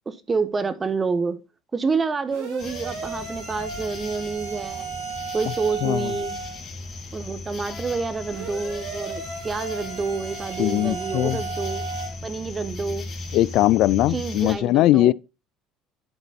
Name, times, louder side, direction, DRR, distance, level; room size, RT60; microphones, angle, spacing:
voice 1, 0.1-1.4 1.7-4.9 5.3-6.3 7.1-11.8 12.2-13.1 14.1-15.1, right 4 dB, 25° right, 1.2 m, -28 dB
sound 1, 2.3-6.6 8.3-12.1, right 5 dB, 80° right, 3.8 m, -35 dB
sound 2, 2.6-14.5, left 2 dB, 40° left, 3.0 m, -37 dB
voice 2, 5.8-6.1 10.6-11.4 13.3-15.1, left 15 dB, 65° left, 0.3 m, -20 dB
Wind instrument woodwind instrument, 7.7-12.2, left 3 dB, 15° left, 1.6 m, -45 dB
11.0 x 4.0 x 4.2 m
supercardioid pair, 95°, 0 cm